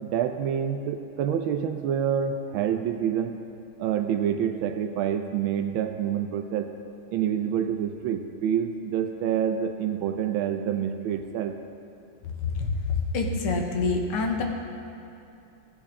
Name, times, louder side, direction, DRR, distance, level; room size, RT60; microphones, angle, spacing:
voice 1, 0.0-3.4 3.8-6.7 7.1-11.7, right 9 dB, 75° right, 7 dB, 1.3 m, -27 dB
voice 2, 12.4-14.4, left 4 dB, 85° left, 2 dB, 1.9 m, -26 dB
14.5 x 8.1 x 3.6 m, 2.7 s
omnidirectional pair, 2.4 m